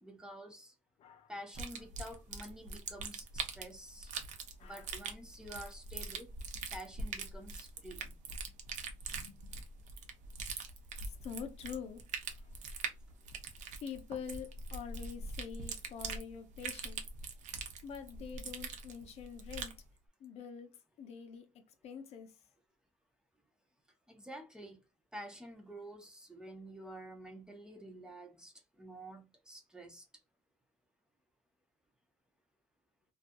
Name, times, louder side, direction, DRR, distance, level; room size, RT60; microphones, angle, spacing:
voice 1, 0.0-0.7 1.3-4.1 4.6-6.3 6.7-8.2 24.1-24.8 25.1-30.0, right 1 dB, 5° right, 0.5 m, -49 dB
voice 2, 1.0-1.8 4.6-4.9 5.5-5.7 8.5-8.6 8.8-8.9 9.2-9.5 11.0-12.0 12.3-12.6 13.8-17.0 17.8-19.8 20.2-20.7 21.0-22.4, left 7 dB, 55° left, 0.5 m, -46 dB
sound 1, 1.5-19.8, right 4 dB, 75° right, 0.7 m, -43 dB
2.6 x 2.3 x 2.5 m
cardioid pair, 150°, 13 cm